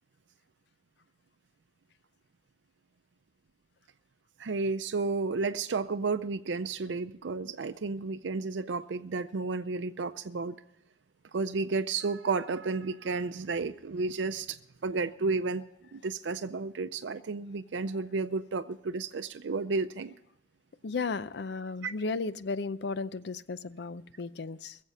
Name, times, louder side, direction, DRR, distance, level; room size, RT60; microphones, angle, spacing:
voice 1, 4.4-10.6 11.3-14.6 14.8-15.6 15.9-20.1 21.8-21.9, right 4 dB, 85° right, 9 dB, 0.5 m, -32 dB
voice 2, 20.8-24.8, left 4 dB, 70° left, 15 dB, 0.5 m, -34 dB
21.5 x 7.5 x 5.5 m, 0.85 s
head